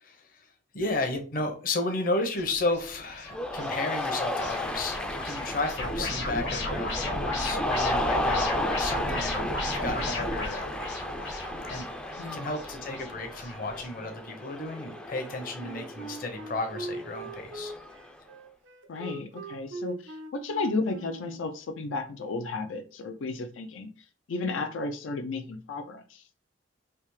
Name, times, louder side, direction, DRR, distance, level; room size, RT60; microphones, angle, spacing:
voice 1, 0.0-0.5 0.7-9.4 9.7-11.4 11.6-11.9 12.2-17.7, left 2 dB, 45° left, 4 dB, 0.7 m, -33 dB
sound 1, 2.4-13.9, left 1 dB, 65° left, 1.3 m, -35 dB
Cheering, 3.3-18.1, left 1 dB, 5° left, 0.3 m, -34 dB
voice 2, 12.2-12.5 18.9-23.9 24.3-26.3, left 3 dB, 90° left, 6 dB, 0.4 m, -33 dB
Wind instrument woodwind instrument, 15.6-21.5, right 2 dB, 85° right, 0.6 m, -40 dB
3.4 x 2.7 x 3.1 m, 0.38 s
head